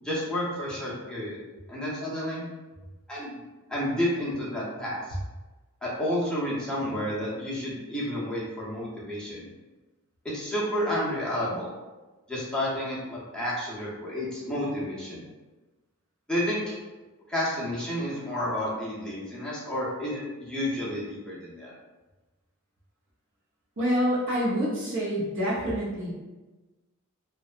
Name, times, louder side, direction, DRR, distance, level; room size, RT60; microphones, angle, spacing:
voice 1, 0.0-1.4 1.7-2.5 3.1-3.4 3.7-5.0 5.8-9.5 10.2-11.7 12.3-15.2 16.3-16.8 17.3-21.7, left 1 dB, 5° left, -7 dB, 0.6 m, -30 dB
voice 2, 23.8-26.1, equal, 60° right, -6 dB, 0.6 m, -27 dB
2.6 x 2.2 x 2.4 m, 1.2 s
head